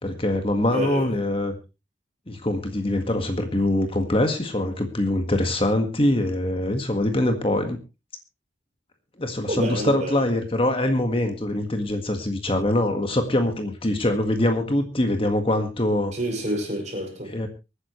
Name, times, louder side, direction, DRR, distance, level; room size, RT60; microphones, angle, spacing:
voice 1, 0.0-1.6 2.3-7.8 9.2-16.1 17.3-17.5, left 1 dB, 30° left, 5 dB, 1.7 m, -23 dB
voice 2, 0.7-1.1 9.5-10.3 16.1-17.4, equal, 40° right, 1 dB, 6.0 m, -28 dB
25.0 x 9.9 x 3.1 m, 0.28 s
head